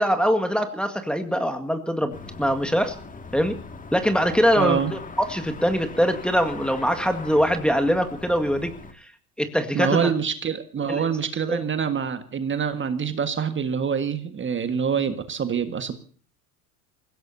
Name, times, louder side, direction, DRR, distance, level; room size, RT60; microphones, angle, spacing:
voice 1, 0.0-3.0 3.3-3.6 3.9-8.7 9.4-10.1 10.9-11.1 11.5-11.6, equal, ahead, 5 dB, 1.9 m, -23 dB
sound 1, 2.1-8.9, left 4 dB, 15° left, 2.1 m, -40 dB
voice 2, 4.6-4.9 9.7-15.9, right 7 dB, 25° right, 9 dB, 1.7 m, -25 dB
28.5 x 16.5 x 2.8 m, 0.43 s
figure-of-eight pair, 75°, 45 cm